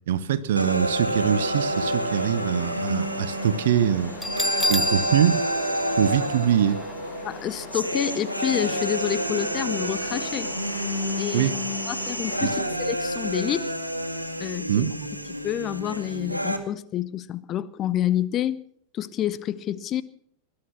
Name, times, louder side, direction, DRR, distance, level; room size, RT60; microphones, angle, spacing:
voice 1, 0.1-4.1 4.7-5.4 6.0-6.8 11.3-11.6 12.4-12.5 14.7-14.9, right 9 dB, 60° right, 0.8 m, -23 dB
sound 1, 0.6-16.6, equal, 85° right, 1.8 m, -29 dB
sound 2, 1.1-12.6, left 2 dB, 65° left, 7.2 m, -41 dB
Bell, 4.2-6.9, left 1 dB, 5° left, 0.6 m, -29 dB
voice 2, 7.2-10.5 11.2-11.5 11.9-13.7 14.4-14.9 15.4-18.6 18.9-20.0, left 11 dB, 30° left, 0.8 m, -28 dB
20.0 x 11.5 x 6.0 m
figure-of-eight pair, 90°, 0 cm